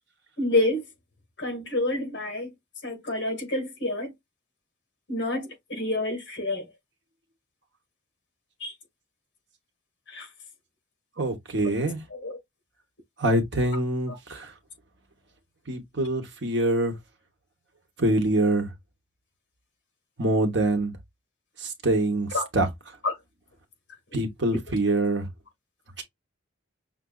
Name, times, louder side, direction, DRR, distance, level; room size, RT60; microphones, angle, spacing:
voice 1, 0.4-0.8 1.4-2.5 2.8-4.1 5.1-6.6 8.6-8.7 10.1-10.3 12.1-12.4 22.3-22.5 23.0-23.2 24.1-24.2, left 2 dB, 60° left, 1.7 m, -28 dB
voice 2, 11.2-12.0 13.2-14.5 15.7-17.0 18.0-18.7 20.2-20.9 21.6-22.7 24.1-25.3 26.0-26.1, right 1 dB, 55° right, 1.0 m, -25 dB
5.9 x 2.5 x 2.3 m
head